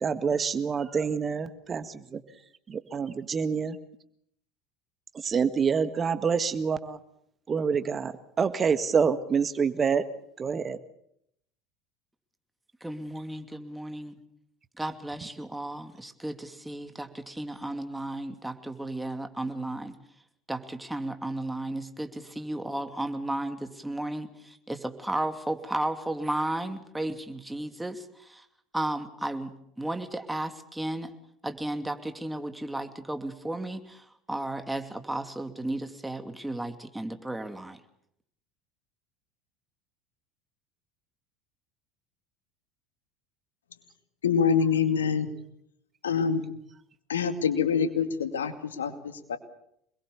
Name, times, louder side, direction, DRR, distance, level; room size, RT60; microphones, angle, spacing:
voice 1, 0.0-1.9 2.1-2.2 2.7-3.8 5.2-7.0 7.5-8.1 8.4-10.0 10.4-10.8, right 6 dB, 30° right, 11 dB, 1.8 m, -26 dB
voice 2, 12.8-14.2 14.8-19.9 20.5-28.4 28.7-31.1 31.4-34.0 34.3-37.8, right 1 dB, 5° right, 7 dB, 2.7 m, -34 dB
voice 3, 44.2-45.3 46.0-46.5 47.1-49.4, left 6 dB, 80° left, 9 dB, 2.3 m, -26 dB
27.0 x 21.5 x 7.0 m, 0.74 s
hypercardioid pair, 75°, 0 cm